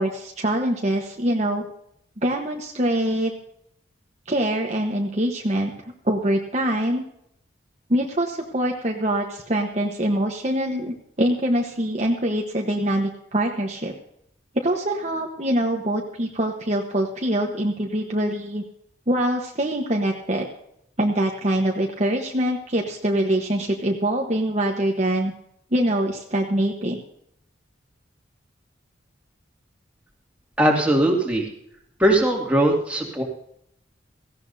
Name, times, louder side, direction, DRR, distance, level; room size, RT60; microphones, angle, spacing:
voice 1, 0.0-1.6 2.2-3.3 4.3-5.7 6.0-7.0 7.9-13.9 14.6-18.6 19.1-20.4 21.0-25.3 25.7-27.0, right 1 dB, 35° right, 1 dB, 1.1 m, -24 dB
voice 2, 30.6-31.5 32.0-33.2, right 1 dB, 5° right, -1 dB, 2.3 m, -20 dB
17.5 x 15.5 x 2.7 m, 0.74 s
head